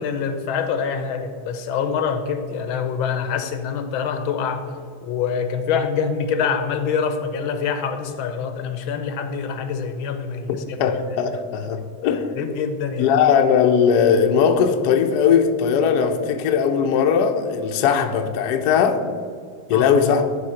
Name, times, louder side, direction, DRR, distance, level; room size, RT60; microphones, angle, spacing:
voice 1, 0.0-4.6 5.0-10.8 12.4-13.2 19.7-19.9, left 6 dB, 85° left, 1.5 m, -25 dB
voice 2, 10.5-12.4 13.0-19.1 19.7-20.3, left 7 dB, 65° left, 1.0 m, -19 dB
11.5 x 3.9 x 5.6 m
omnidirectional pair, 2.2 m